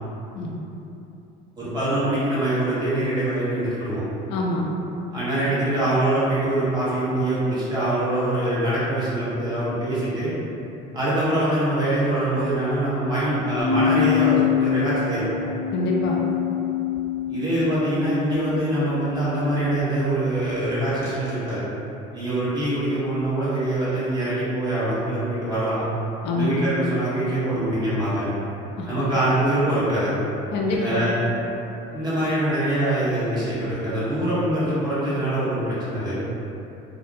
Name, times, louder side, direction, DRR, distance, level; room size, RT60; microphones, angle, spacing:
voice 1, 1.6-4.0 5.1-10.3 10.9-15.4 17.3-21.7 22.1-25.8 26.3-28.3 28.9-30.1 30.7-31.2 31.9-36.2, right 1 dB, 20° right, -11 dB, 1.0 m, -24 dB
voice 2, 4.3-4.7 15.7-16.2 26.2-26.6 28.8-28.9 30.5-31.0, left 2 dB, 65° left, -2 dB, 0.4 m, -25 dB
sound 1, 13.6-19.9 21.0-21.3, left 9 dB, 15° left, 0.7 m, -25 dB
2.6 x 2.0 x 2.5 m, 2.8 s
cardioid pair, 120°, 20 cm